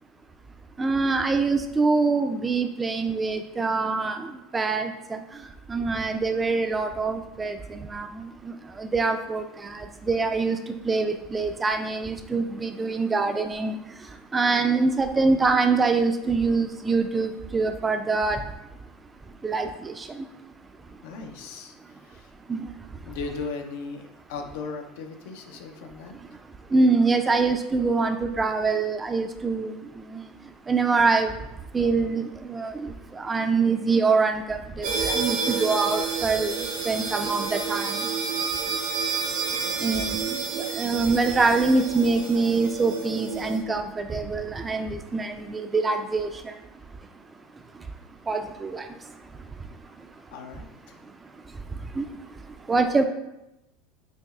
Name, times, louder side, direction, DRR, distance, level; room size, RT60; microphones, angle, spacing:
voice 1, 0.8-5.2 5.7-10.6 10.8-13.8 14.3-18.4 19.4-20.3 22.5-22.7 26.7-30.3 30.7-31.3 31.7-36.6 36.9-38.0 39.8-46.5 48.3-48.9 51.9-52.0 52.7-53.0, right 4 dB, 20° right, 7 dB, 0.3 m, -25 dB
voice 2, 21.0-22.3 23.0-26.2 39.6-39.8 50.3-51.0, left 4 dB, 75° left, 4 dB, 0.5 m, -37 dB
sound 1, 34.8-43.6, right 5 dB, 75° right, 0.8 m, -29 dB
6.0 x 2.1 x 2.3 m, 0.91 s
supercardioid pair, 105°, 0 cm